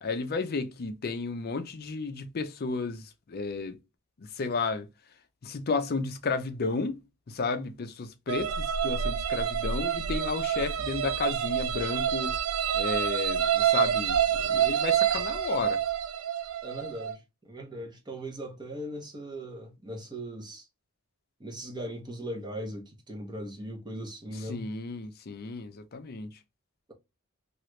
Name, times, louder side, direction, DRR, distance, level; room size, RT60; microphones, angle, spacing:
voice 1, 0.0-3.8 4.2-4.9 5.4-7.0 7.3-12.4 12.7-15.8 24.3-26.4, left 4 dB, 45° left, 0.5 m, -33 dB
sound 1, 8.3-17.2, right 9 dB, 65° right, 0.3 m, -27 dB
voice 2, 16.6-20.7 21.4-24.7, equal, 20° right, 0.8 m, -39 dB
3.0 x 2.4 x 3.0 m
head